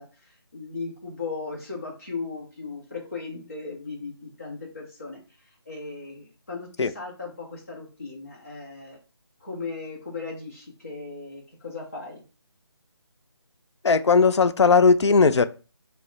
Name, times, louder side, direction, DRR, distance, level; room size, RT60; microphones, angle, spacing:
voice 1, 0.0-9.0 9.4-12.2, left 4 dB, 35° left, 0.6 m, -37 dB
voice 2, 13.8-15.4, left 4 dB, 85° left, 0.4 m, -17 dB
3.0 x 2.0 x 3.9 m
figure-of-eight pair, 180°, 14 cm